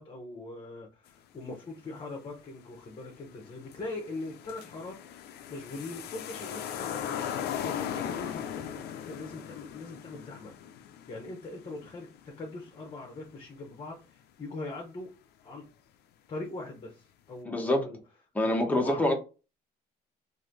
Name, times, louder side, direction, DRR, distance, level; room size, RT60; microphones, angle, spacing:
voice 1, 0.0-5.0 5.5-10.6 11.1-12.1 12.4-15.1 15.4-15.6 16.3-18.0 18.6-19.1, left 2 dB, 30° left, 1.0 m, -41 dB
sound 1, 2.8-2.9 3.3-13.0 13.3-13.4, left 9 dB, 75° left, 0.6 m, -38 dB
voice 2, 17.5-17.9 18.3-19.1, left 1 dB, 10° left, 1.1 m, -26 dB
3.1 x 2.7 x 3.9 m
cardioid pair, 110°, 17 cm